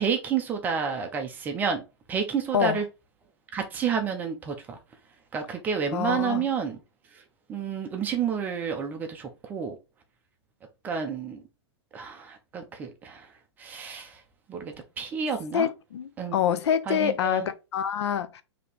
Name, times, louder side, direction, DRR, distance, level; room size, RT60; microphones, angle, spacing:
voice 1, 0.0-1.8 2.1-2.9 3.5-4.8 5.3-6.8 7.5-9.8 10.8-11.4 11.9-13.3 13.6-14.2 14.5-15.7 16.2-16.6 16.9-17.5, right 6 dB, 10° right, 0.5 m, -30 dB
voice 2, 5.9-6.5 15.5-18.4, left 9 dB, 70° left, 0.5 m, -26 dB
4.2 x 2.9 x 3.3 m
hypercardioid pair, 160°, 14 cm